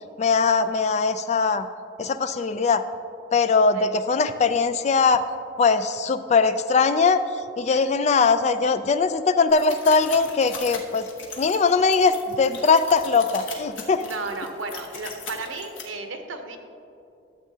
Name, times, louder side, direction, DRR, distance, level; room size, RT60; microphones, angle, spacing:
voice 1, 0.2-1.7 2.0-2.8 3.3-5.3 5.6-7.2 7.6-11.1 11.4-14.0, left 4 dB, 35° left, 10 dB, 0.3 m, -21 dB
sound 1, 9.5-15.8, left 5 dB, 85° left, 1.1 m, -39 dB
voice 2, 13.9-16.6, right 3 dB, 90° right, 5 dB, 0.9 m, -34 dB
12.0 x 7.4 x 2.8 m, 2.7 s
head